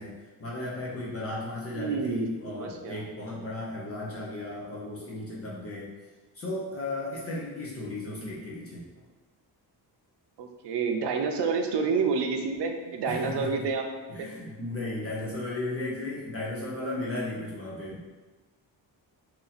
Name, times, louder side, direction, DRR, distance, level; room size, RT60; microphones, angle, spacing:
voice 1, 0.0-5.9 6.3-8.9 13.1-13.7 14.1-18.0, left 2 dB, 35° left, -5 dB, 0.7 m, -35 dB
voice 2, 1.8-3.0 10.4-13.9 14.2-14.3, right 5 dB, 85° right, 4 dB, 0.6 m, -29 dB
2.9 x 2.7 x 4.0 m, 1.3 s
wide cardioid pair, 170°, 40 cm